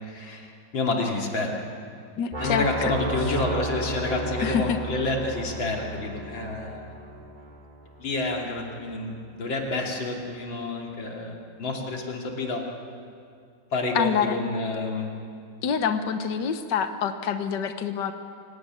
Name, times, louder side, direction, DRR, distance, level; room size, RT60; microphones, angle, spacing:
voice 1, 0.0-1.5 2.4-7.1 8.0-12.6 13.7-15.1, left 2 dB, 85° left, 0 dB, 3.6 m, -29 dB
voice 2, 2.2-2.9 4.4-4.8 14.0-14.4 15.6-18.1, left 7 dB, 70° left, 8 dB, 1.7 m, -26 dB
sound 1, 2.3-8.2, right 1 dB, 25° right, 3.5 m, -33 dB
27.0 x 17.5 x 9.5 m, 2.4 s
omnidirectional pair, 2.0 m